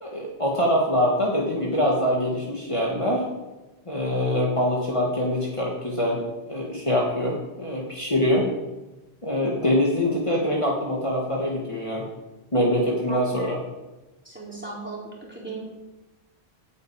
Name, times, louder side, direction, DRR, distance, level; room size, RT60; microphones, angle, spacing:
voice 1, 0.0-3.3 3.9-8.5 9.2-12.0 12.5-13.6, left 1 dB, 30° left, -3 dB, 2.0 m, -24 dB
voice 2, 13.1-13.6 14.2-15.6, right 2 dB, 10° right, -4 dB, 3.8 m, -37 dB
9.3 x 8.2 x 8.8 m, 1.1 s
omnidirectional pair, 1.1 m